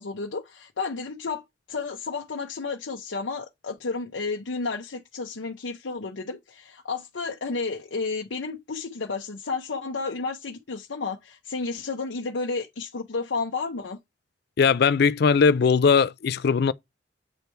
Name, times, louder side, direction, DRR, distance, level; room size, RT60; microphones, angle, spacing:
voice 1, 0.0-1.4 1.7-14.0, left 4 dB, 80° left, 0.8 m, -32 dB
voice 2, 14.6-16.7, left 5 dB, 55° left, 0.4 m, -19 dB
8.0 x 3.4 x 4.5 m
head